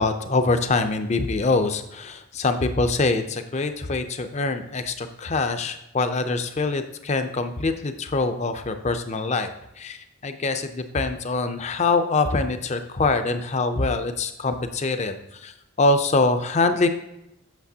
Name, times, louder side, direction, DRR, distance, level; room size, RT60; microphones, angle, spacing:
voice 1, 0.0-9.5 9.8-15.5 15.8-16.9, left 3 dB, 35° left, 8 dB, 0.5 m, -24 dB
8.1 x 6.7 x 2.8 m, 0.86 s
head